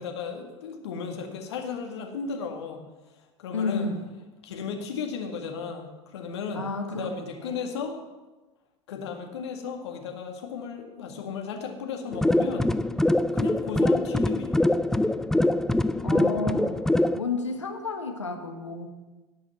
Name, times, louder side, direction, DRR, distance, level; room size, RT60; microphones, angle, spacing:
voice 1, 0.0-2.8 3.4-3.9 4.4-6.6 6.9-8.0 8.9-12.7 13.3-14.6, left 6 dB, 65° left, 3 dB, 1.9 m, -35 dB
voice 2, 3.5-4.0 6.5-7.6 16.0-16.8 17.1-18.9, left 4 dB, 80° left, 4 dB, 1.4 m, -31 dB
sound 1, 12.1-17.2, left 1 dB, 5° left, 0.4 m, -23 dB
17.5 x 6.3 x 5.7 m, 1.2 s
figure-of-eight pair, 80°, 15 cm